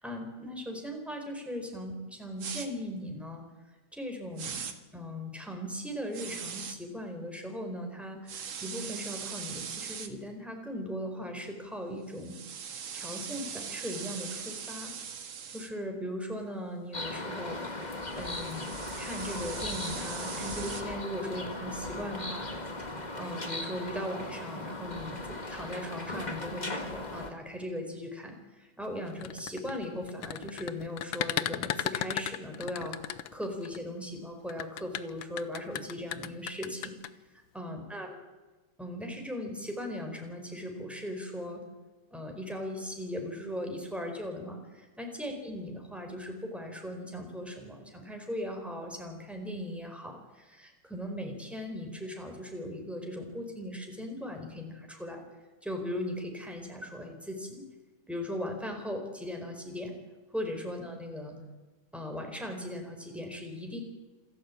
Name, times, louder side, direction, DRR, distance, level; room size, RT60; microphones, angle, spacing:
voice 1, 0.0-3.4 3.9-4.7 4.9-12.4 12.9-14.9 15.5-22.5 23.2-38.1 38.8-41.6 42.1-55.2 55.6-57.6 58.1-59.9 60.3-61.4 61.9-63.8, equal, ahead, 2 dB, 4.6 m, -38 dB
sound 1, 2.4-2.7 4.4-4.7 6.1-6.8 8.3-10.1 12.1-15.7 17.8-20.8, right 7 dB, 90° right, 2.4 m, -40 dB
sound 2, 16.9-27.3, left 2 dB, 20° left, 2.1 m, -38 dB
sound 3, 29.1-33.8 34.5-37.1, left 11 dB, 80° left, 1.6 m, -35 dB
27.5 x 13.0 x 8.6 m, 1.2 s
omnidirectional pair, 2.2 m